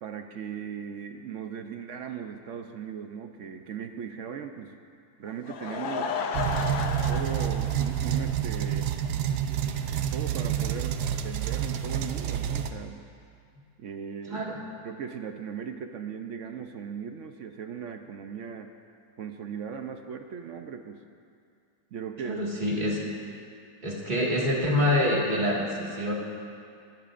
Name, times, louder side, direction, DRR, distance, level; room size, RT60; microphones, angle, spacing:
voice 1, 0.0-4.8 5.2-6.1 7.1-9.3 10.1-13.0 13.8-14.4 14.8-18.7 19.2-21.0 21.9-22.4, right 7 dB, 60° right, 6 dB, 0.8 m, -38 dB
Laughter / Crowd, 5.3-8.7 9.0-9.1 9.7-9.8 10.0-10.1, left 5 dB, 75° left, 1.3 m, -33 dB
sound 1, 6.3-12.7, right 9 dB, 85° right, 1.2 m, -28 dB
voice 2, 14.3-14.6 22.2-23.0 23.8-26.1, left 1 dB, 30° right, -3 dB, 2.0 m, -26 dB
22.0 x 12.5 x 2.5 m, 2.4 s
omnidirectional pair, 1.7 m